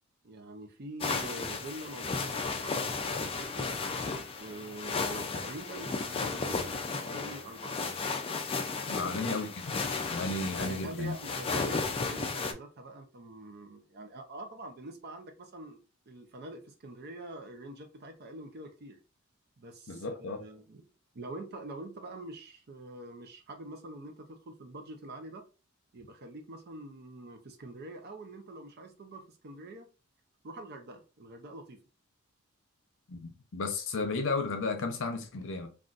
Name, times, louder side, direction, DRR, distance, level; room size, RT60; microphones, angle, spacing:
voice 1, 0.2-3.7 4.4-8.0 8.8-9.4 10.6-15.8 16.1-19.0 19.6-20.9 21.1-25.5 25.9-29.9 30.4-31.8, right 2 dB, 50° right, 0.5 m, -45 dB
sound 1, 1.0-12.5, left 4 dB, 25° left, 0.4 m, -34 dB
voice 2, 8.9-9.5 10.1-11.2 19.9-20.4 33.1-35.7, left 3 dB, 65° left, 0.7 m, -33 dB
3.8 x 2.4 x 2.4 m
head